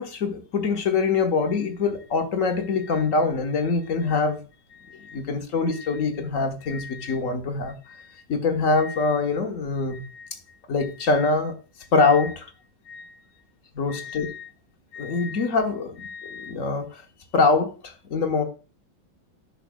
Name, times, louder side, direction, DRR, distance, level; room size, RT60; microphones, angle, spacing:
voice 1, 0.0-4.4 4.7-10.3 10.7-11.5 11.9-12.5 12.9-13.1 13.7-14.5 14.9-17.0 17.3-18.4, left 4 dB, 50° left, 5 dB, 1.2 m, -24 dB
13.0 x 6.1 x 2.3 m, 0.34 s
omnidirectional pair, 2.2 m